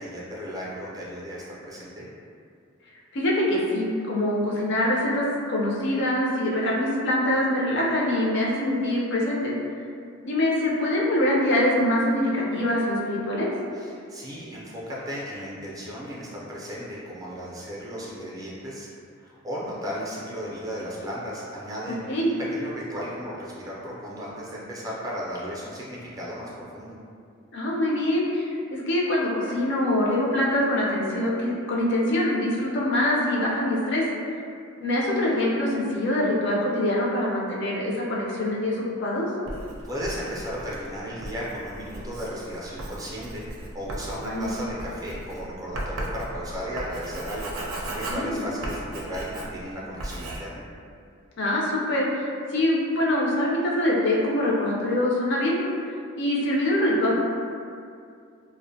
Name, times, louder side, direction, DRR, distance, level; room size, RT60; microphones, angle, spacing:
voice 1, 0.0-2.0 13.7-18.9 19.2-22.0 22.3-26.9 39.9-43.4 43.7-50.6, equal, 15° right, -6 dB, 0.4 m, -35 dB
voice 2, 3.1-9.5 10.2-13.5 22.1-22.3 27.5-34.0 34.8-39.3 44.2-44.5 48.1-48.4 51.4-52.3 52.5-55.6 56.2-57.2, left 1 dB, 60° left, -4 dB, 0.4 m, -24 dB
Writing, 39.5-49.7 50.0-50.4, right 1 dB, 85° right, 0.4 m, -36 dB
2.4 x 2.1 x 2.6 m, 2.4 s
head